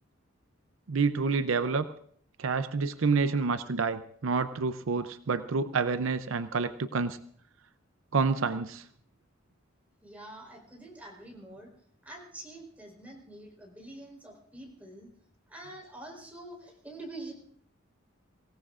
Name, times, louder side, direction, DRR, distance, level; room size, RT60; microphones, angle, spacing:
voice 1, 0.9-1.9 2.4-7.2 8.1-8.8, right 4 dB, 70° right, 11 dB, 0.6 m, -28 dB
voice 2, 10.0-11.7 12.0-15.1 15.5-17.3, right 1 dB, 5° right, -1 dB, 4.1 m, -46 dB
24.5 x 17.0 x 2.5 m, 0.62 s
head